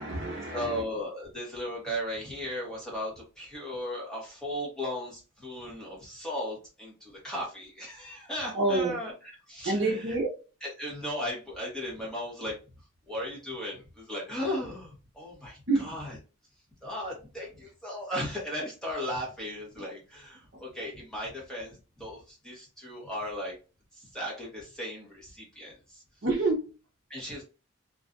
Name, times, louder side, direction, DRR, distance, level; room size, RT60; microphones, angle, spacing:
voice 1, 0.0-0.8 8.5-9.0 9.6-10.4 15.7-15.9 20.5-20.6 26.2-26.7, right 2 dB, 55° right, 0.6 m, -28 dB
voice 2, 0.5-10.2 10.6-12.5 13.1-16.2 16.8-23.6 23.9-26.0 27.1-27.4, left 1 dB, 5° left, 0.9 m, -36 dB
2.6 x 2.3 x 2.4 m
head